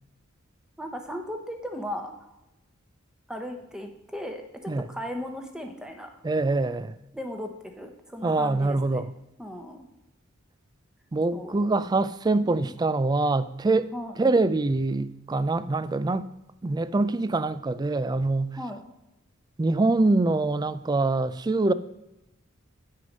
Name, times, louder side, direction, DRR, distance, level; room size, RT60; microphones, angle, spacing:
voice 1, 0.8-2.3 3.3-6.1 7.1-9.0 9.4-9.9 11.3-11.7 12.4-12.7 13.9-14.2 18.5-18.8, equal, 5° right, 1.0 m, -37 dB
voice 2, 6.2-6.9 8.2-9.1 11.1-13.9 14.2-16.3 16.6-18.6 19.6-21.7, right 2 dB, 20° right, 0.3 m, -24 dB
8.7 x 6.4 x 5.3 m
head